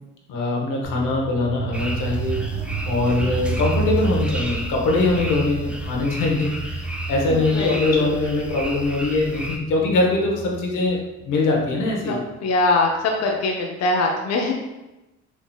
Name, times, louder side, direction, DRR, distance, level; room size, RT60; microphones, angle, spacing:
voice 1, 0.3-2.5 2.8-6.8 7.1-12.2, left 2 dB, 90° left, -1 dB, 0.8 m, -22 dB
sound 1, 0.8-11.9, right 3 dB, 35° right, 1.4 m, -30 dB
sound 2, 1.7-9.6, equal, 5° right, 0.4 m, -34 dB
voice 2, 7.3-8.2 12.1-14.5, left 2 dB, 60° left, 1 dB, 0.6 m, -22 dB
4.5 x 2.7 x 2.3 m, 1.0 s
cardioid pair, 90°, 30 cm